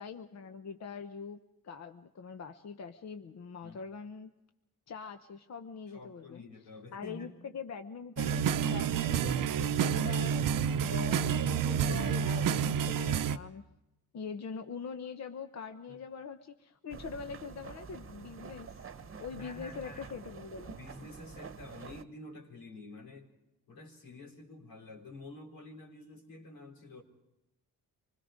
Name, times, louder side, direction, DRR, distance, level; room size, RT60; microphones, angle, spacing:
voice 1, 0.0-1.4 1.6-4.3 4.9-6.4 6.9-13.6 14.1-18.9 19.2-20.8, left 5 dB, 50° left, 8 dB, 1.0 m, -43 dB
voice 2, 5.9-7.3 15.9-16.0 19.4-20.1 20.7-23.3 23.7-27.0, left 2 dB, 85° left, -2 dB, 4.4 m, -49 dB
sound 1, 8.2-13.4, right 8 dB, 65° right, 0.8 m, -29 dB
sound 2, 16.9-22.0, right 5 dB, 40° right, 1.1 m, -48 dB
26.0 x 20.5 x 5.2 m, 0.92 s
cardioid pair, 85°, 35 cm